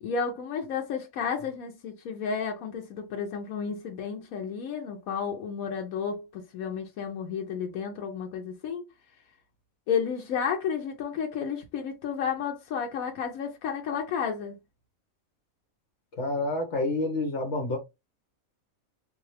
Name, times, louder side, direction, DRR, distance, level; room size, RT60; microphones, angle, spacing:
voice 1, 0.0-8.8 9.9-14.6, left 6 dB, 85° left, 1.1 m, -32 dB
voice 2, 16.2-17.8, left 2 dB, 55° left, 1.5 m, -28 dB
3.7 x 2.8 x 3.2 m
omnidirectional pair, 1.4 m